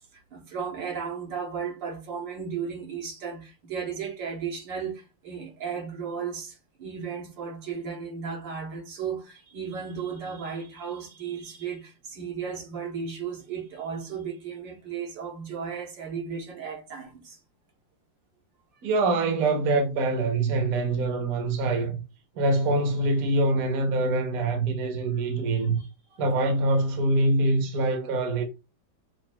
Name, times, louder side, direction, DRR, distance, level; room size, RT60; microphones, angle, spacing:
voice 1, 0.0-17.4 25.6-26.2, right 6 dB, 75° right, 1.7 m, -35 dB
voice 2, 18.8-21.9 22.4-25.8 26.2-28.4, right 2 dB, 55° right, 1.2 m, -24 dB
6.0 x 2.5 x 2.3 m
omnidirectional pair, 2.1 m